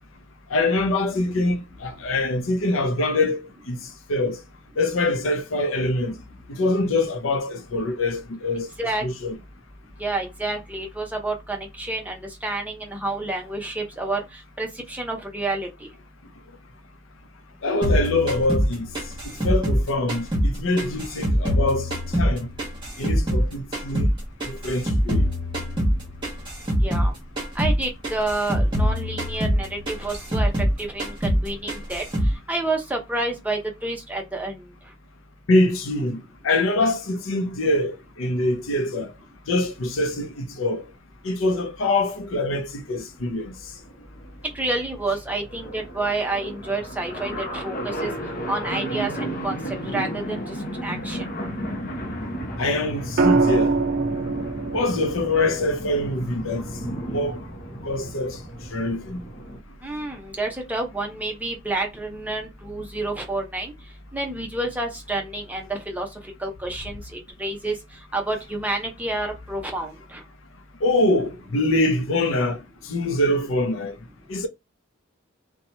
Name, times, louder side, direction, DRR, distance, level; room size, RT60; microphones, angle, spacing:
voice 1, 0.5-3.8 4.1-4.4 4.8-6.2 6.5-9.4 17.6-18.9 19.2-22.5 23.0-24.1 24.5-25.3 35.5-36.2 36.4-39.1 39.5-40.8 41.2-43.5 52.6-53.7 54.7-56.7 57.1-57.4 57.8-58.4 58.7-59.2 70.8-72.6 72.9-74.0 74.3-74.5, left 2 dB, 85° left, 0.6 m, -24 dB
voice 2, 10.0-15.9 26.8-27.1 27.5-32.0 32.5-34.6 44.5-48.1 48.5-50.6 50.8-51.3 59.8-63.7 64.1-67.8 68.1-70.2, right 2 dB, 10° right, 0.6 m, -29 dB
sound 1, 17.8-20.5 20.8-23.5 23.7-27.1 27.4-27.8 28.0-30.7 31.0-31.4 31.7-32.3, equal, 25° right, 1.1 m, -23 dB
sound 2, 43.1-43.2 43.5-43.6 43.7-59.6, equal, 45° left, 0.8 m, -33 dB
sound 3, 53.2-57.3 59.0-59.4, right 3 dB, 50° right, 0.4 m, -25 dB
2.9 x 2.2 x 2.7 m
head